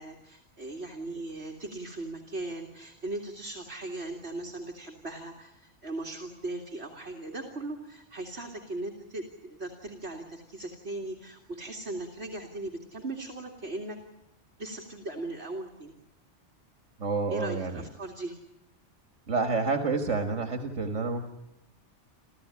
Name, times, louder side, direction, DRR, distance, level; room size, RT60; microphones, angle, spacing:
voice 1, 0.0-14.0 14.6-15.9 17.3-18.4, right 2 dB, 65° right, 0 dB, 2.7 m, -38 dB
voice 2, 17.0-17.8 19.3-21.3, right 4 dB, 85° right, 5 dB, 2.1 m, -29 dB
29.5 x 14.0 x 9.9 m, 0.86 s
omnidirectional pair, 1.2 m